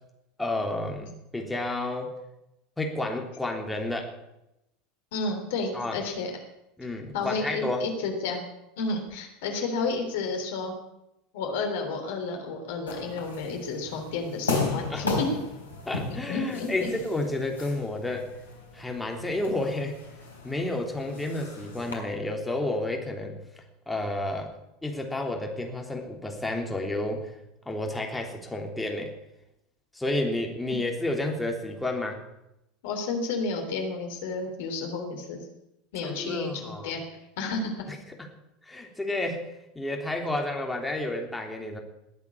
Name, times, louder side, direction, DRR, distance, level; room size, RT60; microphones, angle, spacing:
voice 1, 0.4-2.1 2.8-4.1 5.7-6.0 6.8-7.8 14.9-15.1 15.9-18.3 18.7-20.0 20.4-23.4 23.9-24.5 24.8-27.3 27.6-29.1 29.9-32.2 36.0-36.9 37.9-38.0 38.6-39.5 39.7-41.8, left 2 dB, 10° left, 1 dB, 3.3 m, -31 dB
voice 2, 5.1-6.3 7.1-8.4 8.8-10.8 11.3-15.3 16.1-16.9 32.8-35.4 35.9-37.0 37.4-37.9, left 3 dB, 65° left, 4 dB, 3.5 m, -31 dB
sound 1, 12.9-21.9, left 3 dB, 85° left, 3.7 m, -35 dB
20.0 x 8.4 x 8.5 m, 0.88 s
figure-of-eight pair, 80°, 0 cm